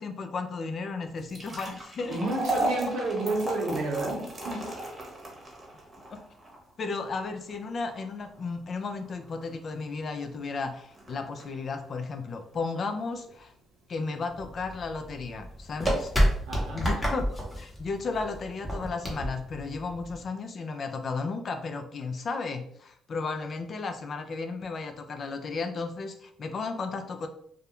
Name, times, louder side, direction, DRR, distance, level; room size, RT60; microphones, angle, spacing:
voice 1, 0.0-2.2 2.6-2.8 6.1-6.2 6.8-13.5 13.9-16.1 16.7-17.2 17.6-27.3, left 4 dB, 50° left, 7 dB, 0.3 m, -34 dB
sound 1, 1.1-13.4 13.8-13.9 14.6-14.8 15.1-15.2 15.7-16.2, right 1 dB, 30° right, 0.8 m, -36 dB
voice 2, 2.1-4.7 16.5-16.9, right 2 dB, 80° right, 0 dB, 0.7 m, -30 dB
sound 2, 14.3-20.3, equal, 15° left, 0.8 m, -30 dB
2.3 x 2.0 x 2.9 m, 0.67 s
cardioid pair, 90°, 0 cm